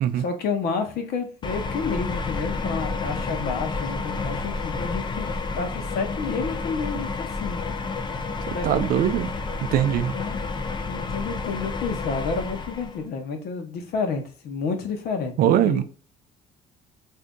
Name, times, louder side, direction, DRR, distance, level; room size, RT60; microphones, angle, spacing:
voice 1, 0.1-5.3 5.5-7.8 8.5-8.9 9.9-10.4 10.9-15.8, left 4 dB, 70° left, 0.9 m, -30 dB
sound 1, 1.4-13.0, left 4 dB, 25° left, 0.5 m, -30 dB
voice 2, 8.6-9.3 9.7-10.1 15.4-15.8, right 10 dB, 60° right, 0.4 m, -21 dB
2.7 x 2.5 x 3.6 m
cardioid pair, 110°, 17 cm